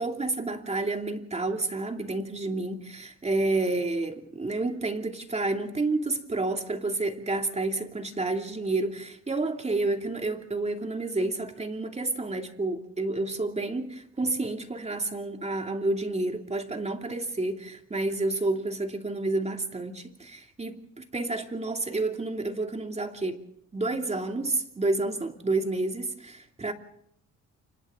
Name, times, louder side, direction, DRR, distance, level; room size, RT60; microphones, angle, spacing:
voice 1, 0.0-23.4 23.7-26.7, right 2 dB, 20° right, 2.8 m, -30 dB
29.5 x 26.0 x 3.9 m
cardioid pair, 90°, 30 cm